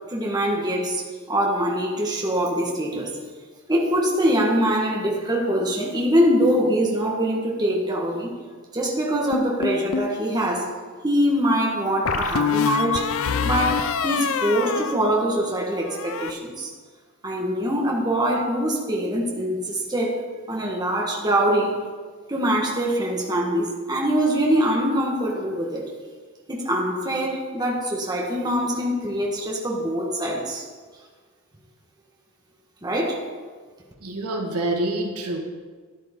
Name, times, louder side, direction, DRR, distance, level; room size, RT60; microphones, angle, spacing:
voice 1, 0.1-3.2 3.7-8.3 8.7-10.7 11.0-13.1 13.4-16.7 17.2-20.2 20.5-21.7 22.3-25.9 26.5-30.6 32.8-33.2, equal, 20° right, -1 dB, 1.4 m, -23 dB
sound 1, 9.3-10.2 12.1-15.6 15.8-16.3, left 6 dB, 70° left, 0.5 m, -26 dB
voice 2, 34.0-35.4, right 1 dB, 90° right, 2 dB, 1.6 m, -26 dB
12.5 x 10.5 x 3.7 m, 1.5 s
head